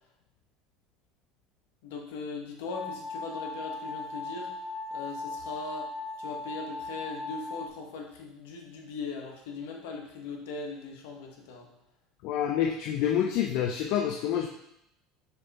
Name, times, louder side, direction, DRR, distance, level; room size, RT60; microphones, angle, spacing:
voice 1, 1.8-4.5 4.9-5.9 6.2-11.7, left 4 dB, 85° left, 1 dB, 1.2 m, -39 dB
sound 1, 2.7-7.7, left 3 dB, 15° right, 1.4 m, -38 dB
voice 2, 12.2-14.5, left 9 dB, 65° left, 2 dB, 0.5 m, -27 dB
6.9 x 3.4 x 4.1 m, 0.79 s
supercardioid pair, 110°, 0 cm